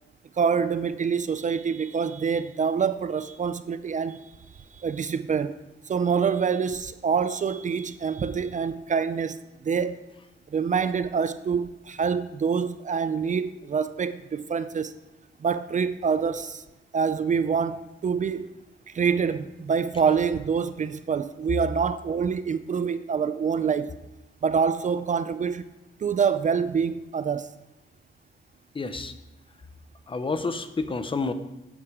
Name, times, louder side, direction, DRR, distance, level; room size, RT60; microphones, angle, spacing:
voice 1, 0.4-4.3 4.8-5.6 5.9-9.4 9.6-10.0 10.5-14.9 15.4-16.6 16.9-18.5 18.9-23.9 24.4-25.7 26.0-27.5, right 6 dB, 40° right, 0.4 m, -26 dB
voice 2, 28.7-29.1 30.1-31.3, left 3 dB, 25° left, 0.7 m, -29 dB
11.5 x 8.8 x 4.8 m
wide cardioid pair, 160°, 19 cm